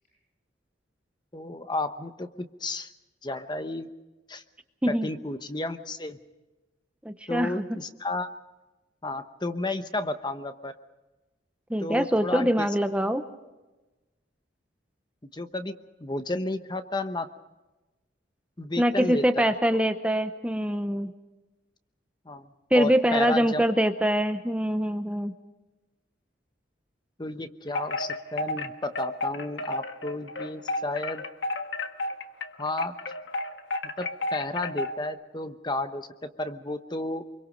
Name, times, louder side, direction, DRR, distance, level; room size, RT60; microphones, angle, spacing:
voice 1, 1.3-2.9 3.2-3.9 4.3-4.4 4.9-6.2 7.3-8.3 9.0-10.8 11.8-12.7 15.3-15.7 16.0-17.3 18.6-19.5 22.3-23.6 27.2-31.2 32.6-32.9 34.0-37.2, left 2 dB, 25° left, 9 dB, 1.0 m, -32 dB
voice 2, 7.0-7.6 11.7-13.2 18.8-21.1 22.7-25.3, equal, 5° right, 8 dB, 0.8 m, -24 dB
Wind chime, 27.7-35.1, left 2 dB, 75° left, 1.5 m, -32 dB
25.5 x 23.5 x 5.2 m, 1.1 s
head